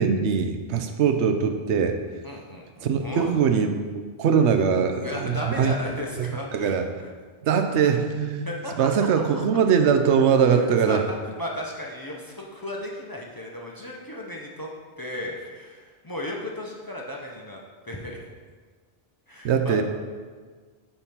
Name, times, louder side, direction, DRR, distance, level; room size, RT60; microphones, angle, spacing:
voice 1, 0.0-2.0 2.8-5.7 6.2-6.3 6.5-6.8 7.4-8.5 8.8-11.0 19.4-19.8, right 6 dB, 80° right, 7 dB, 0.9 m, -22 dB
voice 2, 2.2-3.3 5.0-7.1 8.4-8.9 9.3-9.4 10.5-14.7 15.0-17.6 17.8-18.3 19.3-19.8, left 1 dB, 25° left, -2 dB, 0.5 m, -35 dB
5.1 x 4.5 x 5.6 m, 1.5 s
omnidirectional pair, 1.2 m